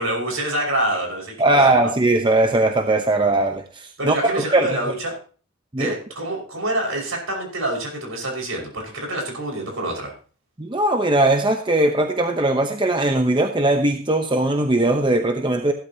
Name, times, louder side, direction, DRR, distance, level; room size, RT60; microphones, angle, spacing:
voice 1, 0.0-1.7 4.0-5.2 5.8-10.1, right 1 dB, 70° right, 0 dB, 5.4 m, -26 dB
voice 2, 1.4-4.7 5.7-5.9 10.6-15.7, right 2 dB, 20° right, 5 dB, 0.9 m, -19 dB
16.5 x 12.0 x 2.9 m, 0.39 s
head